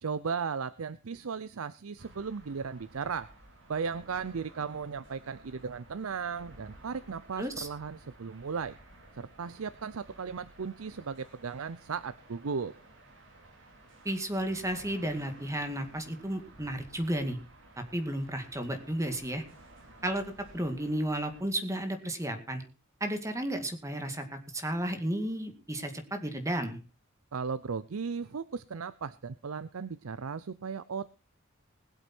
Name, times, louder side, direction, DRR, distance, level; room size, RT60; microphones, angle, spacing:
voice 1, 0.0-3.3 3.7-8.8 9.1-12.7 27.3-31.1, right 5 dB, 90° right, 16 dB, 0.6 m, -36 dB
sound 1, 2.0-21.4, right 1 dB, 65° right, 3.7 m, -55 dB
voice 2, 7.4-7.7 14.0-17.4 17.8-19.4 20.0-20.3 20.5-22.6 23.0-26.8, right 1 dB, 15° right, 6 dB, 2.1 m, -33 dB
20.5 x 8.2 x 4.4 m, 0.34 s
head